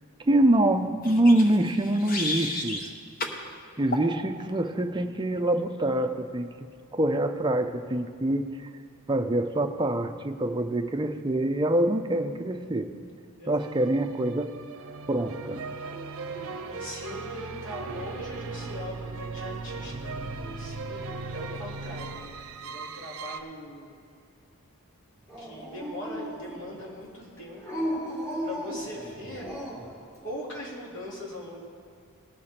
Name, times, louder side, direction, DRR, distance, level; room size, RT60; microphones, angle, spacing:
voice 1, 0.2-2.9 3.8-6.5 6.9-8.5 9.1-12.9 13.5-14.5 15.1-15.6, right 1 dB, 20° right, 6 dB, 0.5 m, -25 dB
sound 1, 1.0-2.9 3.2-3.4 3.9-4.1, left 2 dB, 40° left, 1.1 m, -33 dB
voice 2, 13.4-13.7 16.3-23.9 25.4-27.9 28.4-29.6 30.2-31.7, equal, 60° left, -4 dB, 2.9 m, -41 dB
sound 2, 13.6-23.4, right 4 dB, 65° right, 0.7 m, -38 dB
Dog, 25.3-26.8 27.6-30.0, equal, 15° left, 2.0 m, -35 dB
18.5 x 6.8 x 4.3 m, 2.3 s
head